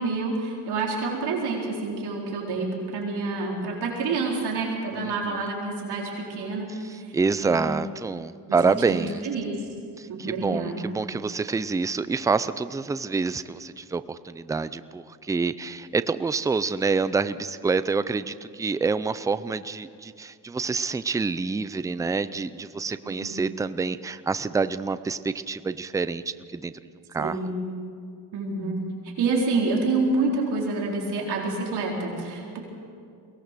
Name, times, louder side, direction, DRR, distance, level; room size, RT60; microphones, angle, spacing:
voice 1, 0.0-6.7 6.9-7.1 7.4-7.8 8.4-8.6 8.9-9.6 10.1-10.8 23.0-23.5 27.2-27.7 28.3-28.8 29.2-32.6, right 3 dB, 65° right, -2 dB, 4.3 m, -28 dB
voice 2, 7.1-9.2 10.0-26.2 26.5-26.7 27.1-27.4, right 4 dB, 10° right, 13 dB, 0.4 m, -27 dB
22.5 x 18.5 x 6.8 m, 2.3 s
cardioid pair, 130°, 43 cm